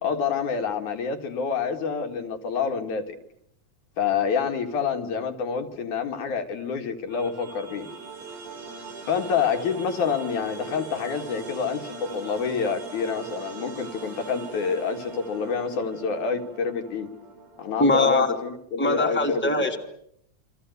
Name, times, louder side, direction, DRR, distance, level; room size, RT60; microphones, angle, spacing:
voice 1, 0.0-3.1 4.0-7.9 9.1-17.1 17.6-19.7, left 6 dB, 80° left, 5 dB, 3.5 m, -27 dB
sound 1, 7.1-18.1, right 4 dB, 85° right, 6.0 m, -41 dB
voice 2, 17.8-18.3 18.8-19.8, left 2 dB, 5° left, 3 dB, 2.4 m, -21 dB
29.0 x 25.0 x 8.1 m, 0.73 s
omnidirectional pair, 3.5 m